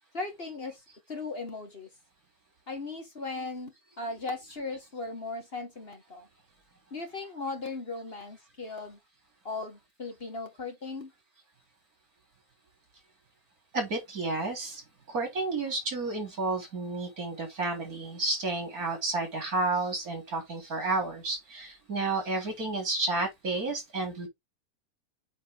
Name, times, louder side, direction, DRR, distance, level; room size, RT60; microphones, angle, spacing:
voice 1, 0.1-0.8 1.1-1.9 2.7-6.3 6.9-9.0 9.4-11.1, left 3 dB, 40° left, 2.0 m, -37 dB
voice 2, 13.7-14.8 15.1-24.3, right 2 dB, 70° right, 4.0 m, -31 dB
8.4 x 4.0 x 3.7 m
omnidirectional pair, 1.6 m